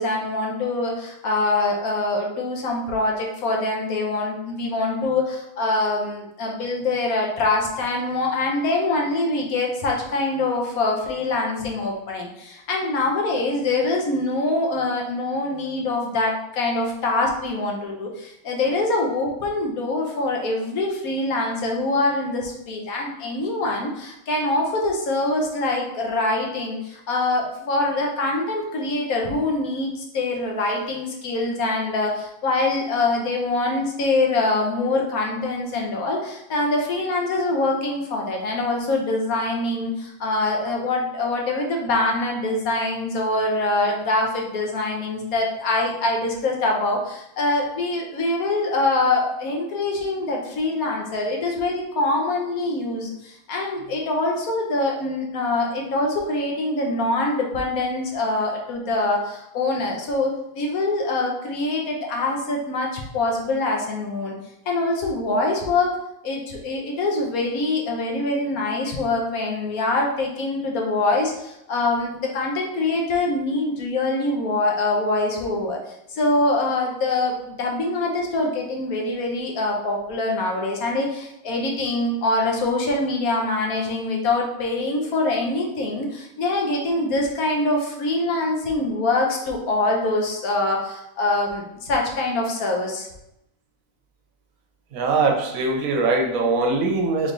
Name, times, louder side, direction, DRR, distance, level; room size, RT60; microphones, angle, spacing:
voice 1, 0.0-64.3 64.7-65.9 66.2-75.8 76.1-93.1, left 2 dB, 85° left, 0 dB, 1.3 m, -24 dB
voice 2, 94.9-97.3, right 3 dB, 75° right, 2 dB, 1.1 m, -21 dB
3.8 x 3.2 x 3.8 m, 0.84 s
omnidirectional pair, 1.5 m